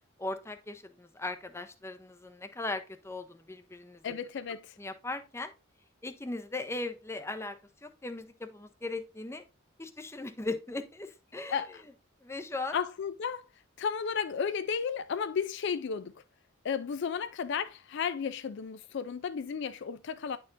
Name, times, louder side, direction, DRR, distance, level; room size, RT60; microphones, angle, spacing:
voice 1, 0.2-4.2 4.8-5.5 6.0-7.6 7.8-9.4 9.8-11.8 12.2-12.8, left 2 dB, 15° left, 0.6 m, -38 dB
voice 2, 4.0-4.7 11.5-11.8 12.7-13.4 13.8-16.1 16.6-20.4, left 6 dB, 60° left, 0.4 m, -33 dB
9.9 x 4.5 x 2.5 m
head